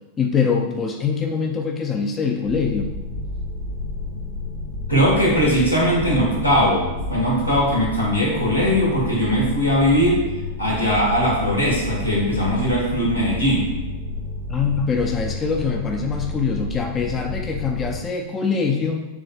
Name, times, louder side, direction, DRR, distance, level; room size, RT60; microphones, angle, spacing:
voice 1, 0.2-2.9 14.5-19.0, left 5 dB, 20° left, 3 dB, 0.4 m, -23 dB
sound 1, 2.4-18.0, left 2 dB, 50° left, 0.8 m, -30 dB
voice 2, 4.9-10.2 10.6-13.7, equal, 85° left, -4 dB, 1.2 m, -20 dB
6.9 x 3.1 x 2.2 m, 1.1 s
figure-of-eight pair, 90°, 0 cm